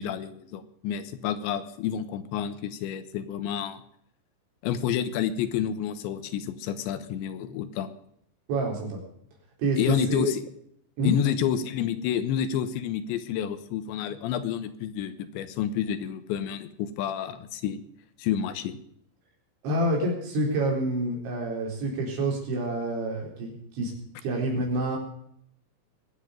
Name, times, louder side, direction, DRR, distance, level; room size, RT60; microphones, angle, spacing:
voice 1, 0.0-3.8 4.6-7.9 9.8-10.5 11.0-17.8 18.2-18.8, left 9 dB, 90° left, 11 dB, 3.3 m, -29 dB
voice 2, 8.5-9.0 9.6-10.3 11.0-11.1 19.6-23.9 24.2-25.0, right 1 dB, 85° right, 0 dB, 6.5 m, -28 dB
22.5 x 8.7 x 5.2 m, 0.69 s
omnidirectional pair, 5.1 m